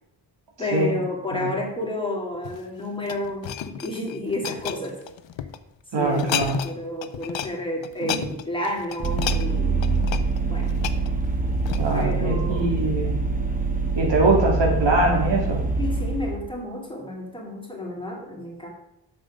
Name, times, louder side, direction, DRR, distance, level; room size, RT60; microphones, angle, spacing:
voice 1, 0.6-5.0 6.0-6.4 6.6-9.8 10.4-10.7 11.9-12.7 15.8-18.7, left 1 dB, 10° left, -1 dB, 2.7 m, -31 dB
sound 1, 2.3-5.6 6.1-6.8 7.0-7.5 7.8-12.1 12.7-12.8, left 10 dB, 85° left, 0.7 m, -32 dB
voice 2, 5.9-6.6 8.0-8.2 11.8-13.1 14.0-15.6, right 2 dB, 70° right, 0 dB, 2.7 m, -22 dB
Vehicle, 9.0-16.4, right 3 dB, 20° right, 1.1 m, -25 dB
7.9 x 6.6 x 6.4 m, 0.82 s
wide cardioid pair, 90°, 44 cm